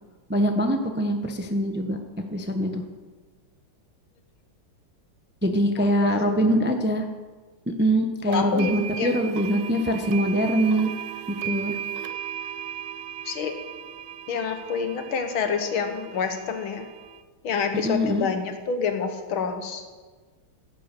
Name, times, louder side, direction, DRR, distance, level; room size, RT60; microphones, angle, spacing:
voice 1, 0.3-2.0 2.3-2.8 5.4-7.0 7.7-10.9 11.3-11.7 17.8-18.3, equal, 15° right, 5 dB, 0.4 m, -23 dB
voice 2, 5.8-6.3 8.3-9.3 13.3-13.5 14.3-16.9 17.4-19.8, left 6 dB, 70° left, 6 dB, 2.0 m, -28 dB
sound 1, 8.3-17.2, right 10 dB, 70° right, 1.1 m, -36 dB
16.5 x 8.8 x 6.8 m, 1.4 s
omnidirectional pair, 2.4 m